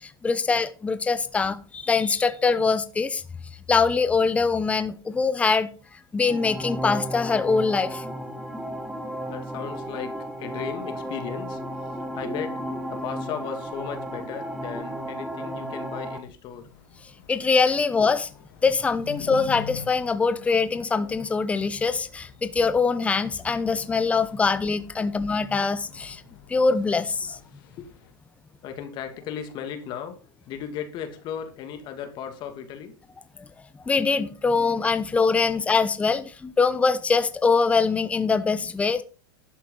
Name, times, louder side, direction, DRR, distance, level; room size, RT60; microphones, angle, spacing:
voice 1, 0.0-3.2 3.7-5.7 6.1-8.0 17.3-18.3 18.6-26.2 26.5-27.4 33.9-39.0, left 4 dB, 10° left, 0.7 m, -23 dB
sound 1, 6.2-16.2, right 1 dB, 5° right, 1.3 m, -34 dB
voice 2, 9.3-16.7 23.8-23.9 27.2-27.4 27.8-27.9 28.6-33.0, left 8 dB, 40° left, 2.1 m, -36 dB
sound 2, 16.4-28.1, left 9 dB, 70° left, 2.2 m, -46 dB
11.5 x 7.3 x 3.8 m
supercardioid pair, 135°, 12 cm